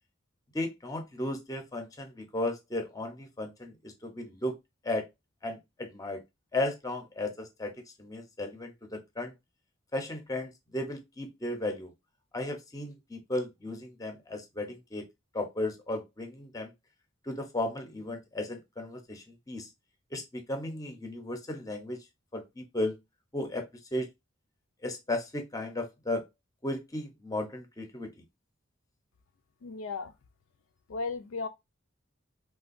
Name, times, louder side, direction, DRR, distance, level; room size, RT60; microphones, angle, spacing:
voice 1, 0.5-4.5 4.8-5.1 5.4-6.2 6.5-7.7 8.0-9.3 9.9-11.9 12.3-15.1 15.3-16.7 17.3-19.7 20.1-22.0 22.3-22.9 23.3-23.6 23.9-24.1 24.8-26.2 26.6-28.1, left 1 dB, 20° left, 0.6 m, -35 dB
voice 2, 29.6-30.1 30.9-31.5, left 4 dB, 80° left, 0.4 m, -35 dB
3.3 x 2.2 x 2.5 m
head